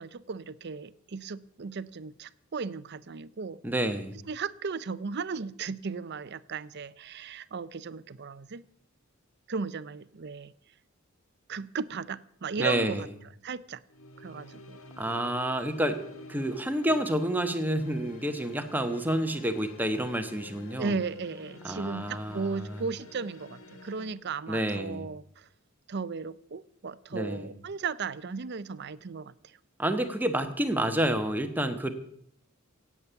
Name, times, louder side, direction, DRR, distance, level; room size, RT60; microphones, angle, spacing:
voice 1, 0.0-3.6 4.3-8.6 9.5-10.5 11.5-13.1 13.4-13.8 14.2-14.8 20.8-25.5 25.9-29.6, right 5 dB, 50° right, 16 dB, 0.6 m, -36 dB
voice 2, 3.6-4.2 12.6-13.1 15.0-16.0 16.3-21.0 21.6-22.8 24.5-25.1 27.1-27.5 29.8-31.9, right 1 dB, 10° right, 7 dB, 1.2 m, -29 dB
sound 1, 13.9-24.1, left 2 dB, 75° left, 1.5 m, -49 dB
16.5 x 8.4 x 7.0 m, 0.67 s
head